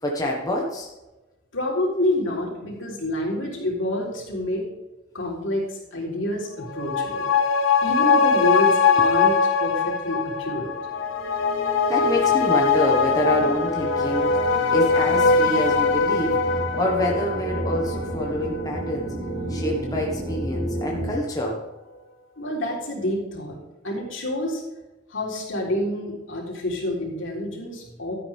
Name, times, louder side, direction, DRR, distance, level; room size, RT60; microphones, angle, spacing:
voice 1, 0.0-0.9 11.9-14.4 14.7-19.1 19.5-21.6, left 1 dB, 20° left, -2 dB, 1.5 m, -26 dB
voice 2, 1.5-4.7 5.1-7.3 7.8-10.7 22.4-23.6 23.8-24.6 25.1-28.1, left 1 dB, 70° left, -2 dB, 3.7 m, -27 dB
sound 1, 6.6-19.5 19.8-19.9, left 5 dB, 90° left, 1.4 m, -22 dB
sound 2, 10.4-10.5 10.7-21.1, right 2 dB, 20° right, 3.5 m, -33 dB
13.0 x 10.0 x 3.5 m, 1.1 s
head